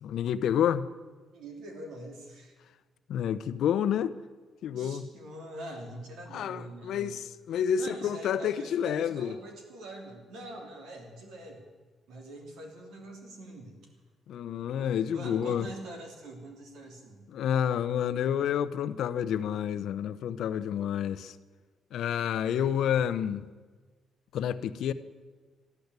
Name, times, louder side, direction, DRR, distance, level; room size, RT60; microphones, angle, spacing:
voice 1, 0.0-0.9 3.1-4.2 4.6-5.1 6.3-9.4 14.3-15.7 17.3-21.4 21.9-23.5 24.3-24.9, left 9 dB, 75° left, 0.7 m, -29 dB
voice 2, 1.3-2.6 4.7-7.1 7.8-11.6 12.1-13.8 15.0-17.2, right 1 dB, 85° right, 3.3 m, -44 dB
14.0 x 12.0 x 8.1 m
cardioid pair, 90°, 0 cm